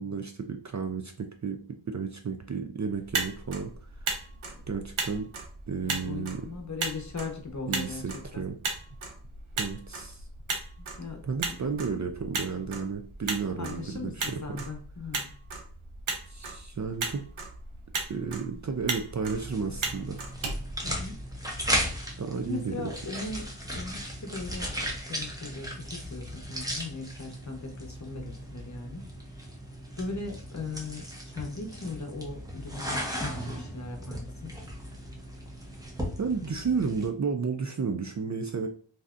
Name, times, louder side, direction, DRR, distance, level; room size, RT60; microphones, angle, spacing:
voice 1, 0.0-3.9 4.7-5.3 5.7-6.5 7.7-8.6 9.6-10.3 11.2-14.4 16.3-17.3 18.1-20.2 22.2-22.9 36.2-38.7, right 5 dB, 40° right, 6 dB, 0.4 m, -32 dB
Motor vehicle (road), 2.9-21.5, right 3 dB, 90° right, 0.8 m, -37 dB
voice 2, 5.8-8.0 8.3-8.4 11.0-11.2 11.5-11.6 13.6-15.3 20.8-21.2 22.5-23.5 23.7-29.0 30.0-34.5, left 3 dB, 35° left, 4 dB, 0.9 m, -38 dB
sound 1, 19.3-37.1, equal, 10° right, 0.9 m, -36 dB
3.3 x 2.7 x 2.4 m, 0.43 s
wide cardioid pair, 45°, 47 cm